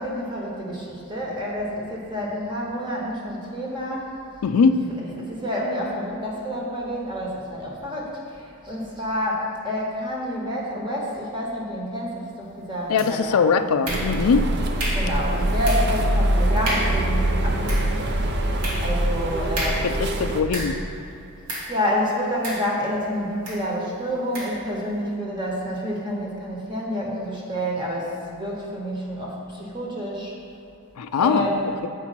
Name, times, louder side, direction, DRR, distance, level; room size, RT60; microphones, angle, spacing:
voice 1, 0.0-4.1 5.0-13.5 14.9-18.2 18.8-19.9 21.7-30.3 31.1-31.6, equal, 20° right, -3 dB, 1.1 m, -28 dB
voice 2, 4.4-4.8 12.9-14.5 19.8-20.8 31.0-31.4, left 5 dB, 75° left, 11 dB, 0.4 m, -21 dB
sound 1, 13.0-13.4 13.8-14.4 14.8-15.2 15.6-16.0 16.3-16.4 16.6-17.1 17.5-20.9 21.5-21.8 22.4-23.0 23.4-23.7 24.3-24.6, right 1 dB, 90° right, 1.8 m, -32 dB
sound 2, 13.9-20.4, right 1 dB, 50° right, 0.6 m, -23 dB
8.1 x 4.5 x 5.8 m, 2.6 s
head